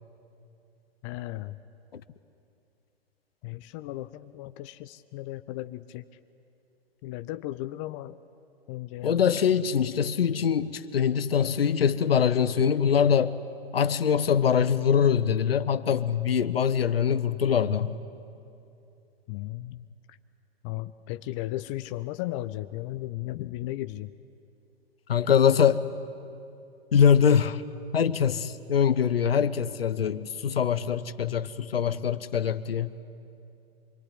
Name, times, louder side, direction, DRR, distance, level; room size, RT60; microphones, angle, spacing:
voice 1, 1.0-1.6 3.4-6.1 7.0-8.2 8.7-9.2 19.3-19.9 20.6-24.1, left 16 dB, 30° left, 0.6 m, -35 dB
voice 2, 9.0-13.4 13.7-18.0 25.1-25.9 26.9-27.6 27.9-32.9, left 7 dB, 65° left, 1.1 m, -23 dB
25.5 x 23.0 x 10.0 m
figure-of-eight pair, 110°, 31 cm